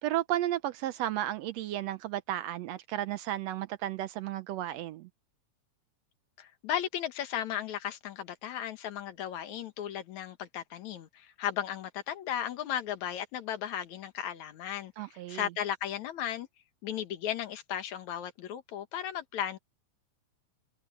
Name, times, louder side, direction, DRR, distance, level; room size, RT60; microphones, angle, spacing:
voice 1, 0.0-5.1 15.0-15.5, right 13 dB, 75° right, 1.6 m, -33 dB
voice 2, 6.4-16.5 16.8-19.6, left 10 dB, 75° left, 2.7 m, -35 dB
omnidirectional pair, 3.3 m